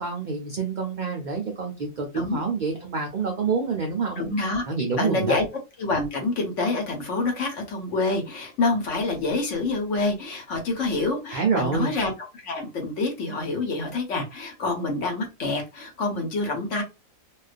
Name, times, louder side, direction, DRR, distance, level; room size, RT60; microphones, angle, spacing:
voice 1, 0.0-4.2 4.7-5.4 11.3-11.9, right 5 dB, 70° right, 0.4 m, -27 dB
voice 2, 4.2-4.6 5.0-5.4 5.8-12.1 12.4-16.8, left 3 dB, 65° left, 1.1 m, -27 dB
2.4 x 2.2 x 2.4 m
omnidirectional pair, 1.4 m